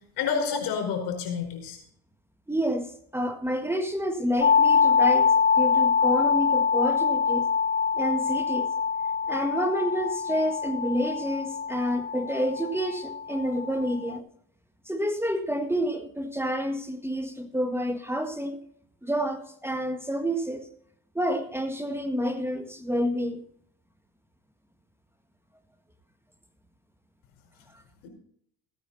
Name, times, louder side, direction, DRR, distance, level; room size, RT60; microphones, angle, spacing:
voice 1, 0.2-1.8 28.0-28.1, left 6 dB, 70° left, 4.7 m, -29 dB
voice 2, 2.5-7.5 7.9-8.7 9.3-14.2 14.9-18.6 19.0-20.7 21.1-23.4, equal, 5° right, 1.5 m, -29 dB
sound 1, 4.4-14.2, left 6 dB, 25° left, 0.5 m, -24 dB
15.5 x 9.6 x 4.2 m
supercardioid pair, 70°, 41 cm